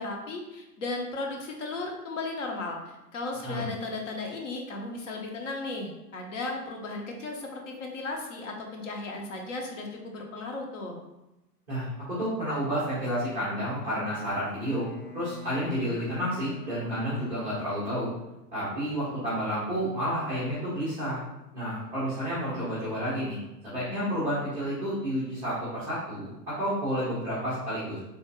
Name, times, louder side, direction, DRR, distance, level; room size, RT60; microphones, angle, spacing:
voice 1, 0.0-2.8 3.1-11.0, left 2 dB, 50° left, 1 dB, 0.8 m, -35 dB
voice 2, 12.2-14.9 15.1-18.1 18.5-21.2 21.5-23.4 23.6-28.0, equal, 5° right, -16 dB, 0.4 m, -30 dB
Bowed string instrument, 14.2-18.4, left 4 dB, 90° left, 0.7 m, -43 dB
3.5 x 2.3 x 3.0 m, 0.94 s
figure-of-eight pair, 120°, 49 cm